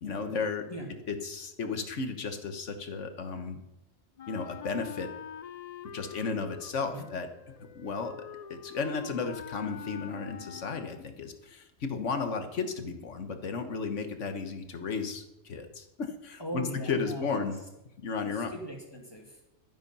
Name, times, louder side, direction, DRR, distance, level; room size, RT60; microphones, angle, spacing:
voice 1, 0.0-0.7 1.1-3.6 4.3-5.1 5.9-7.3 7.7-8.1 8.5-17.6 18.0-18.5, left 5 dB, 85° left, 7 dB, 1.6 m, -34 dB
Wind instrument woodwind instrument, 4.2-11.2, left 9 dB, 55° left, 0.4 m, -45 dB
voice 2, 16.4-17.4 18.3-19.5, equal, 20° left, 0 dB, 2.1 m, -39 dB
12.0 x 9.4 x 5.5 m, 0.90 s
omnidirectional pair, 1.2 m